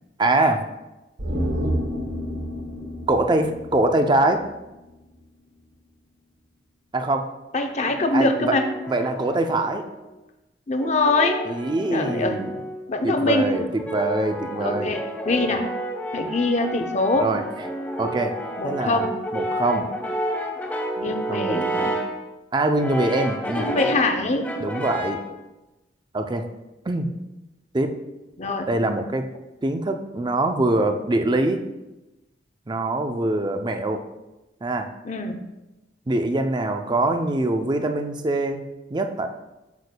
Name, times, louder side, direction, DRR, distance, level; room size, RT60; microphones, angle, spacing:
voice 1, 0.2-0.6 3.1-4.4 6.9-7.3 8.1-8.5 8.9-9.8 11.5-12.5 13.0-15.0 17.1-17.4 18.0-18.3 18.6-19.1 19.3-19.9 21.1-22.0 22.5-23.7 24.6-25.2 26.1-26.4 26.9-27.1 27.7-27.9 28.7-29.2 29.6-31.6 32.7-34.0 34.6-34.9 36.1-38.6 38.9-39.3, right 2 dB, 25° right, 6 dB, 0.5 m, -23 dB
sound 1, 1.2-4.6 4.9-5.0, equal, 80° right, 1.3 m, -29 dB
voice 2, 7.5-8.7 10.7-11.4 11.9-12.4 12.9-13.5 14.6-15.6 16.1-17.3 18.6-19.1 21.0-21.7 23.6-24.5 28.4-28.7 35.0-35.4, left 2 dB, 40° left, 5 dB, 0.6 m, -23 dB
Brass instrument, 8.3-10.1 10.8-12.8 13.5-22.2 22.8-24.1 24.4-25.3, equal, 10° left, 0.8 m, -31 dB
8.1 x 6.7 x 2.2 m, 1.0 s
head